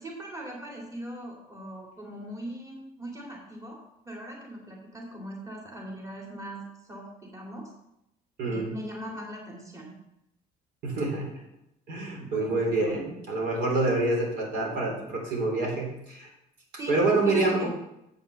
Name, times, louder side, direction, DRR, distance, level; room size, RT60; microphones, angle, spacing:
voice 1, 0.0-7.7 8.4-9.9 12.2-13.0 16.8-17.0 17.2-17.7, right 1 dB, 20° right, -2 dB, 2.4 m, -40 dB
voice 2, 8.4-8.7 10.8-11.3 11.9-16.3 16.9-17.7, right 2 dB, 70° right, -1 dB, 3.8 m, -27 dB
8.0 x 5.6 x 6.9 m, 0.83 s
cardioid pair, 110°, 17 cm